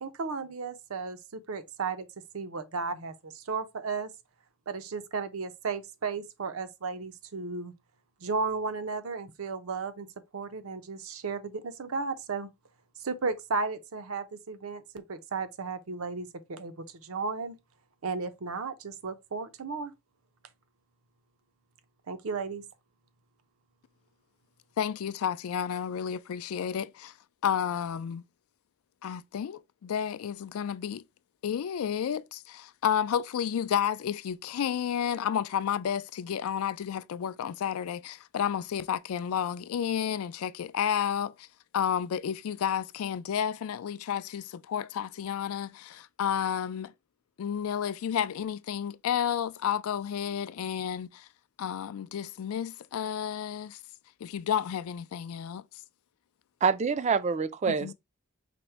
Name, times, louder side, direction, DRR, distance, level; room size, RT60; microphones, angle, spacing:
voice 1, 0.0-2.1 2.3-4.1 4.7-7.7 8.2-10.1 10.3-12.5 13.0-16.7 17.0-17.6 18.0-19.9 22.1-22.6, right 4 dB, 80° right, 0.6 m, -34 dB
voice 2, 24.8-27.1 27.4-28.2 29.0-31.0 31.4-41.5 41.7-46.9 47.4-51.3 51.6-53.8 54.2-55.6 57.7-57.9, left 8 dB, 80° left, 0.3 m, -31 dB
voice 3, 56.6-57.9, right 5 dB, 30° right, 0.3 m, -26 dB
5.1 x 2.1 x 4.4 m
head